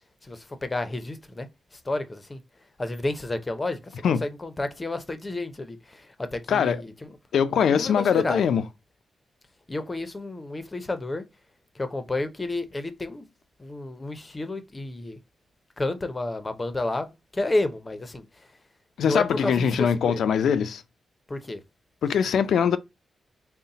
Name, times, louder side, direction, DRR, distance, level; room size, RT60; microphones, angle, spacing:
voice 1, 0.2-2.4 2.8-7.2 7.5-8.4 9.7-11.3 11.7-13.3 13.6-15.2 15.8-18.5 19.0-20.2 21.3-21.6, left 2 dB, 25° left, 0.6 m, -31 dB
voice 2, 7.3-8.6 19.0-20.8 22.0-22.8, left 7 dB, 80° left, 0.4 m, -22 dB
4.0 x 2.1 x 3.9 m
cardioid pair, 110°, 0 cm